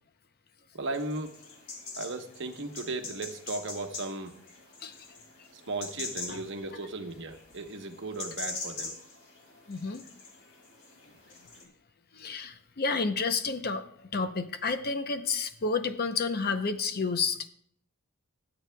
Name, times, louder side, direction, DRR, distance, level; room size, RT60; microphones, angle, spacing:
voice 1, 0.7-1.3 2.0-4.3 5.7-9.0, right 2 dB, 60° right, 6 dB, 1.0 m, -36 dB
sound 1, 0.9-11.6, left 3 dB, 60° left, 2.4 m, -43 dB
voice 2, 9.7-10.0 12.1-13.9 14.1-17.4, left 4 dB, 45° left, 9 dB, 0.7 m, -30 dB
23.0 x 7.9 x 2.2 m, 0.66 s
head